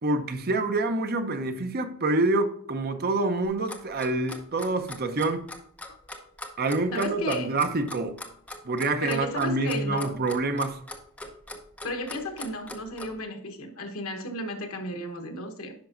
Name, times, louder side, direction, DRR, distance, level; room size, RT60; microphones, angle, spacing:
voice 1, 0.0-5.5 6.6-8.2 8.6-10.8, right 2 dB, 45° right, 0.7 m, -27 dB
Clock, 3.4-13.1, left 1 dB, 5° left, 0.8 m, -40 dB
voice 2, 6.9-7.6 9.0-10.2 11.8-15.7, left 1 dB, 75° left, 1.1 m, -33 dB
10.5 x 5.3 x 2.6 m
head